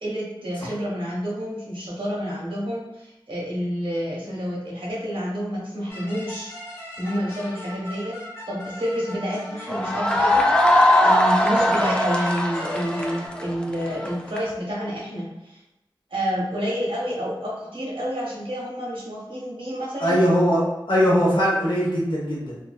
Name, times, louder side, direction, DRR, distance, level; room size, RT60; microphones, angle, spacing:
voice 1, 0.0-6.5 7.0-8.1 8.5-15.6 16.1-20.2, equal, 85° right, -5 dB, 0.9 m, -29 dB
sound 1, 5.9-13.3, left 1 dB, 30° left, 0.9 m, -39 dB
sound 2, 9.7-14.4, left 1 dB, 10° left, 0.3 m, -20 dB
voice 2, 20.0-20.6 20.9-22.6, equal, 65° left, -5 dB, 0.9 m, -20 dB
2.6 x 2.2 x 2.3 m, 0.92 s
wide cardioid pair, 55°, 9 cm